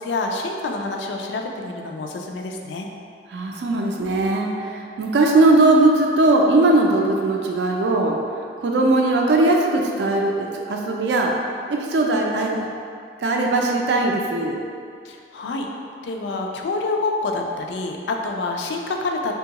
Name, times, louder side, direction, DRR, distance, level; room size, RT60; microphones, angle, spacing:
voice 1, 0.0-2.9 15.0-15.7 16.0-19.3, left 3 dB, 80° left, 2 dB, 0.3 m, -27 dB
voice 2, 3.3-8.2 8.6-11.3 11.7-12.7 13.2-14.6, right 2 dB, 70° right, 0 dB, 0.4 m, -19 dB
3.6 x 2.3 x 2.8 m, 2.3 s
head